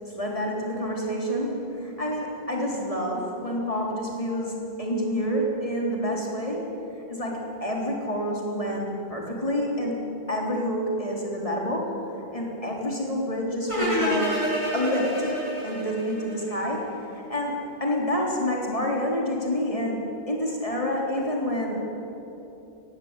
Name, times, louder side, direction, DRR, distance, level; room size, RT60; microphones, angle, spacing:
voice 1, 0.1-6.8 7.1-10.0 10.3-12.0 12.3-14.4 14.7-15.3 15.6-21.8, equal, 30° left, -2 dB, 3.8 m, -28 dB
sound 1, 13.7-16.8, equal, 30° right, 6.8 m, -28 dB
19.0 x 15.5 x 9.9 m, 3.0 s
omnidirectional pair, 1.1 m